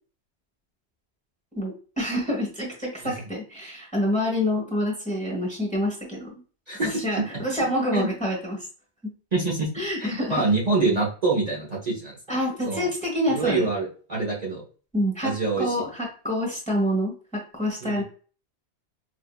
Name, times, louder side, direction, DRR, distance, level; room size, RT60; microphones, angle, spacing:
voice 1, 1.5-6.3 6.8-8.7 9.7-10.4 12.3-13.7 14.9-18.0, equal, 5° left, -2 dB, 1.1 m, -27 dB
voice 2, 6.7-7.2 7.9-8.1 9.3-9.7 10.0-12.2 12.7-12.9 13.3-14.6 15.2-15.8 17.8-18.0, right 3 dB, 40° right, -4 dB, 1.1 m, -25 dB
4.5 x 2.7 x 2.2 m, 0.38 s
omnidirectional pair, 1.1 m